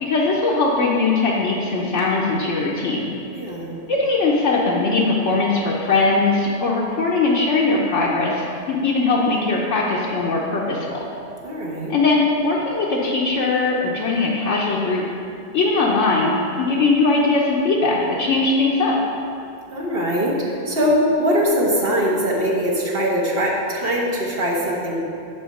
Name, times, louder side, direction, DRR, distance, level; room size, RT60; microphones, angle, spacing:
voice 1, 0.0-3.1 3.9-11.1 11.9-15.0 15.5-19.0, left 3 dB, 70° left, -5 dB, 1.1 m, -20 dB
voice 2, 3.3-3.8 11.4-12.0 19.7-25.0, equal, 50° right, -3 dB, 1.3 m, -22 dB
6.8 x 5.6 x 5.3 m, 2.6 s
omnidirectional pair, 1.3 m